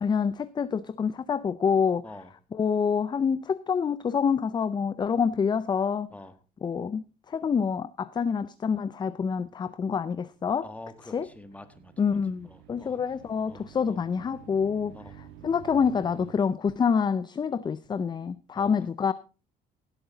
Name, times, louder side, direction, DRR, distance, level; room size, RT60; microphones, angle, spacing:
voice 1, 0.0-2.1 2.5-6.1 6.6-10.7 11.1-11.3 12.0-15.0 15.4-19.1, left 6 dB, 25° left, 0.5 m, -27 dB
sound 1, 9.8-16.3, right 10 dB, 85° right, 1.7 m, -51 dB
voice 2, 10.6-12.2 12.4-13.0 13.5-14.0 14.9-15.1 18.5-18.8, left 1 dB, 10° left, 1.4 m, -46 dB
16.5 x 8.1 x 3.9 m
cardioid pair, 110°, 17 cm